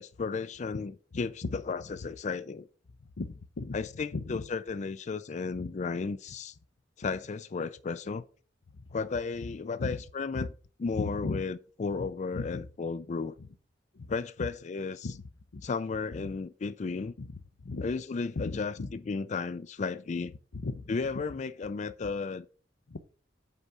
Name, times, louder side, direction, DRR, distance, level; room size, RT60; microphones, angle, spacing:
voice 1, 0.0-2.7 3.7-6.6 7.0-8.2 8.9-10.5 10.8-13.3 14.1-15.1 15.6-17.1 17.8-20.3 20.9-22.5, left 4 dB, 40° left, 0.4 m, -34 dB
voice 2, 3.2-3.8 4.1-4.4 5.6-5.7 9.8-10.0 10.3-10.5 11.0-11.4 12.0-12.1 12.3-12.6 14.0-14.1 15.0-15.2 15.5-15.6 17.2-17.3 17.6-17.9 18.4-18.9 20.5-20.9 22.9-23.0, left 3 dB, 80° left, 0.7 m, -35 dB
8.1 x 4.9 x 5.6 m
head